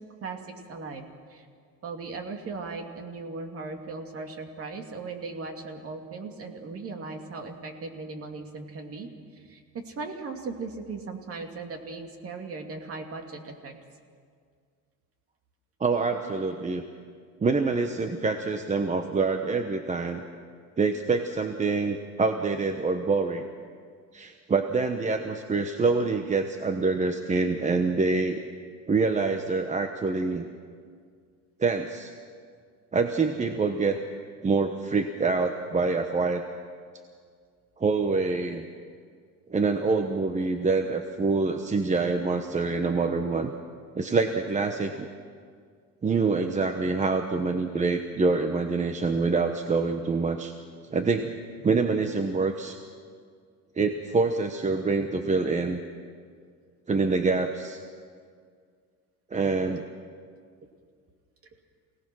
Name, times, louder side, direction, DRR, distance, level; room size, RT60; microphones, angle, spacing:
voice 1, 0.7-1.5 1.8-13.7 60.6-60.7, right 3 dB, 40° right, 4 dB, 2.7 m, -38 dB
voice 2, 15.8-16.8 17.4-20.2 20.8-23.4 24.1-28.4 28.9-30.5 31.6-32.1 32.9-34.0 34.4-36.4 37.8-38.7 39.5-43.5 44.0-45.1 46.0-50.5 50.9-51.3 51.6-52.8 53.8-55.8 56.9-57.8 59.3-59.8, right 4 dB, 20° right, 6 dB, 1.0 m, -26 dB
28.0 x 18.0 x 6.2 m, 2.1 s
cardioid pair, 125°, 36 cm